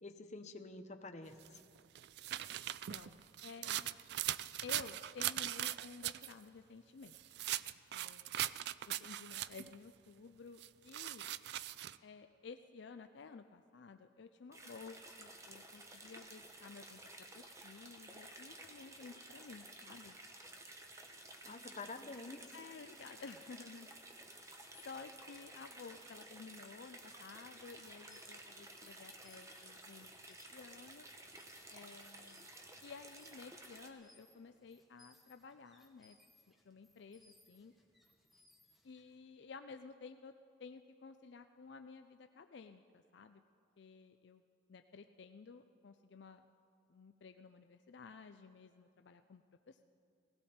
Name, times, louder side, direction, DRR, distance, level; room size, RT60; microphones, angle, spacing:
voice 1, 0.0-1.6 21.4-22.4, left 3 dB, 35° left, 7 dB, 0.7 m, -48 dB
sound 1, 1.4-6.3 7.1-9.7 10.6-12.0, right 13 dB, 55° right, 0.3 m, -40 dB
voice 2, 2.6-3.9 4.6-7.3 7.9-8.4 8.9-11.3 12.0-20.2 22.5-23.9 24.8-31.1 31.7-32.5 32.8-36.2 36.6-37.7 38.8-40.3 40.6-43.4 43.8-44.4 44.7-46.5 46.9-49.8, left 5 dB, 60° left, 8 dB, 0.4 m, -54 dB
sound 2, 14.5-33.9, right 2 dB, 15° right, 0.9 m, -54 dB
sound 3, 27.9-39.2, left 1 dB, ahead, 1.2 m, -69 dB
18.0 x 16.5 x 4.3 m, 2.5 s
head